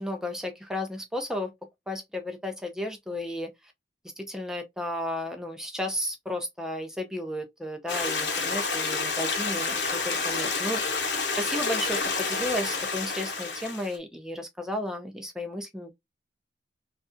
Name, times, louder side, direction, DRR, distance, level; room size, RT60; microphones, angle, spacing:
voice 1, 0.0-1.5 1.9-3.5 4.2-16.0, left 1 dB, 5° right, 0.6 m, -33 dB
Stream, 7.9-14.0, left 4 dB, 65° left, 1.0 m, -29 dB
3.2 x 2.5 x 2.6 m
head